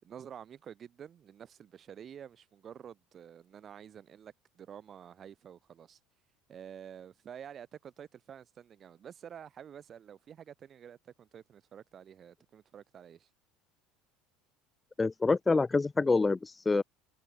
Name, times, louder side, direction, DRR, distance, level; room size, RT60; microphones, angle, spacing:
voice 1, 0.0-6.0 6.5-13.3, right 8 dB, 40° right, 6.2 m, -49 dB
voice 2, 15.0-16.8, left 3 dB, 20° left, 0.3 m, -26 dB
hypercardioid pair, 70°, 0 cm